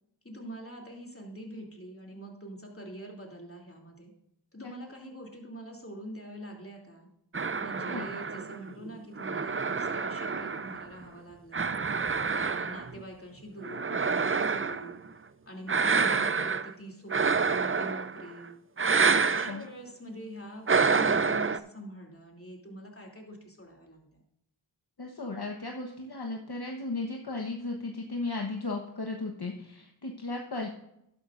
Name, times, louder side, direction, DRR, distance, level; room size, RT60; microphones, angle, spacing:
voice 1, 0.2-4.1 4.5-7.1 7.6-11.8 12.3-15.0 15.5-18.5 19.0-24.2, right 1 dB, 30° left, 0 dB, 3.0 m, -44 dB
sound 1, 7.3-11.0 11.5-13.0 13.6-15.0 15.7-16.7 17.1-18.3 18.8-19.6 20.7-21.6, right 5 dB, 30° right, 0.5 m, -28 dB
voice 2, 25.0-30.7, left 3 dB, 55° left, 1 dB, 1.2 m, -35 dB
12.0 x 11.0 x 2.6 m, 0.80 s
wide cardioid pair, 45°, 45 cm